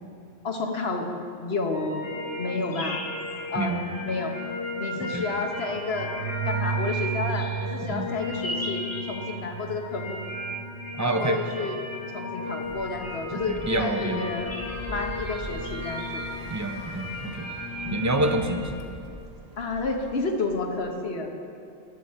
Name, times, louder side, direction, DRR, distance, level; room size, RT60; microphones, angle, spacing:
voice 1, 0.4-2.1 2.4-3.0 3.5-3.8 4.0-4.3 4.8-6.1 6.4-10.2 11.0-11.8 12.1-16.2 17.8-18.2 19.6-21.3, left 3 dB, 65° left, 3 dB, 1.4 m, -31 dB
sound 1, 1.7-18.6, left 2 dB, 15° left, 2.6 m, -34 dB
sound 2, 5.7-14.1, right 10 dB, 85° right, 0.9 m, -36 dB
voice 2, 11.0-11.4 13.5-14.2 16.5-17.5 17.9-18.8, right 2 dB, 20° right, 4 dB, 0.7 m, -27 dB
sound 3, 12.6-21.0, right 2 dB, 35° right, 1.3 m, -43 dB
13.5 x 11.0 x 4.3 m, 2.5 s
omnidirectional pair, 1.1 m